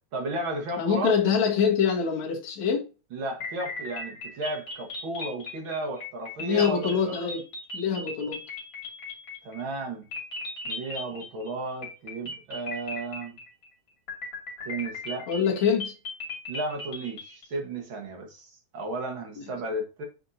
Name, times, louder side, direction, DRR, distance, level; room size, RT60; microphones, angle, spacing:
voice 1, 0.1-1.1 3.1-7.3 9.4-10.0 10.6-13.4 14.7-15.3 16.5-20.0, right 2 dB, 50° right, 1.8 m, -34 dB
voice 2, 0.8-2.9 6.4-7.4 7.7-8.4 15.3-15.9 19.4-19.5, left 6 dB, 65° left, 2.9 m, -25 dB
sound 1, 3.4-9.8 10.1-11.5 11.8-13.7 14.1-17.5, left 2 dB, 45° left, 3.4 m, -38 dB
8.7 x 4.5 x 2.7 m
omnidirectional pair, 3.6 m